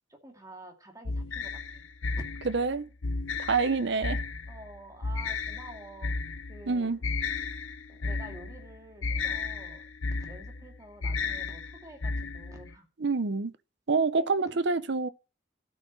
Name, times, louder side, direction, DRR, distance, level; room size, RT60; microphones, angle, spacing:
voice 1, 0.1-2.3 4.5-6.1 6.5-7.0 7.9-9.8 10.3-12.9 14.2-14.6, right 1 dB, 15° right, 2.4 m, -49 dB
sound 1, 1.1-12.7, left 4 dB, 85° left, 0.9 m, -34 dB
voice 2, 2.4-2.9 3.4-4.2 6.7-7.0 13.0-13.5 13.9-15.1, right 4 dB, 60° right, 0.7 m, -27 dB
12.5 x 6.2 x 6.2 m
head